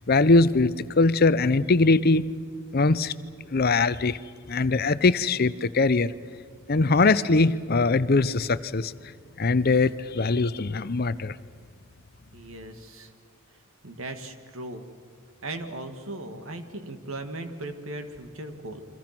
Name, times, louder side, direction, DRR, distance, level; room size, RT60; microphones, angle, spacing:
voice 1, 0.1-2.3 2.7-3.1 3.5-4.2 4.5-6.1 6.7-8.9 9.4-11.4, left 3 dB, 45° left, 15 dB, 0.7 m, -21 dB
voice 2, 12.3-13.1 13.8-14.8 15.4-18.8, right 2 dB, 75° right, 8 dB, 2.2 m, -37 dB
29.5 x 24.5 x 6.0 m, 2.1 s
head